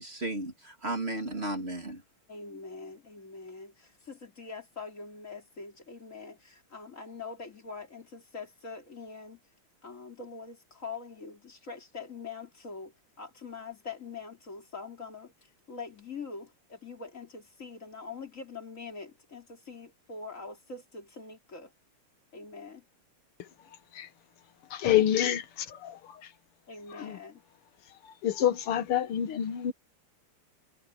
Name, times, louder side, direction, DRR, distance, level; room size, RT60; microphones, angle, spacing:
voice 1, 0.0-2.0, right 2 dB, 30° right, 2.7 m, -34 dB
voice 2, 2.3-9.4 9.8-21.7 22.3-22.9 26.7-27.4, left 4 dB, 35° left, 3.4 m, -44 dB
voice 3, 24.7-26.0 27.0-27.2 28.2-29.7, left 11 dB, 85° left, 2.1 m, -27 dB
omnidirectional pair, 2.4 m